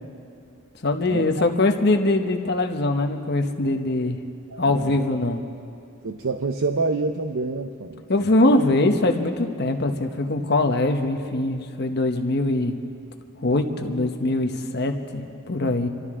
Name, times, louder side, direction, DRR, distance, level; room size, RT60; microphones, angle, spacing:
voice 1, 0.8-4.2 4.6-5.4 8.1-12.8 13.4-15.9, left 2 dB, 50° left, 5 dB, 1.0 m, -22 dB
voice 2, 4.5-5.0 6.0-8.0, right 3 dB, 75° right, 6 dB, 0.6 m, -27 dB
27.5 x 12.5 x 3.7 m, 2.5 s
head